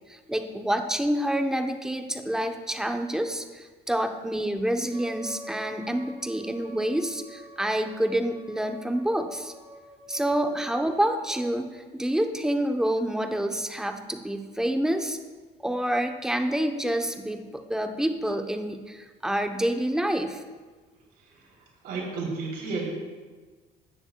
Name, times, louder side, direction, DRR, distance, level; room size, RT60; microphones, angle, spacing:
voice 1, 0.1-9.5 10.1-15.2 15.6-20.4, right 1 dB, 5° right, 5 dB, 0.7 m, -28 dB
Wind instrument woodwind instrument, 4.9-11.5, right 1 dB, 45° right, 3.0 m, -47 dB
voice 2, 21.1-22.9, right 4 dB, 75° right, -4 dB, 3.0 m, -33 dB
17.0 x 7.0 x 2.2 m, 1.4 s
cardioid pair, 110°, 17 cm